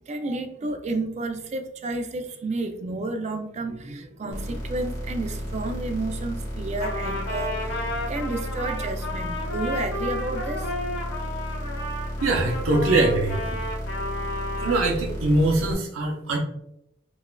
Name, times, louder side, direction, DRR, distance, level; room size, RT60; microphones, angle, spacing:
voice 1, 0.1-10.7, right 2 dB, 35° right, 6 dB, 0.4 m, -31 dB
sound 1, 4.3-15.7, equal, 15° left, 1.0 m, -33 dB
Trumpet, 6.8-14.9, left 1 dB, 70° left, 0.8 m, -33 dB
voice 2, 12.2-13.6 14.6-16.4, right 2 dB, 90° right, 1 dB, 0.6 m, -22 dB
4.0 x 2.4 x 2.2 m, 0.81 s
head